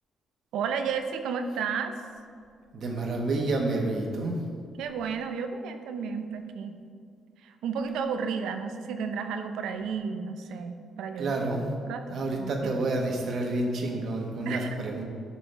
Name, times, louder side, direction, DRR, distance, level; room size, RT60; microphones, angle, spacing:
voice 1, 0.5-1.9 4.8-6.8 7.4-11.4 11.9-12.8 14.4-14.8, right 6 dB, 85° right, 7 dB, 0.6 m, -32 dB
voice 2, 2.7-4.4 11.2-11.7 12.1-15.0, right 2 dB, 60° right, 1 dB, 1.4 m, -29 dB
11.5 x 6.0 x 3.5 m, 2.2 s
cardioid pair, 90°, 0 cm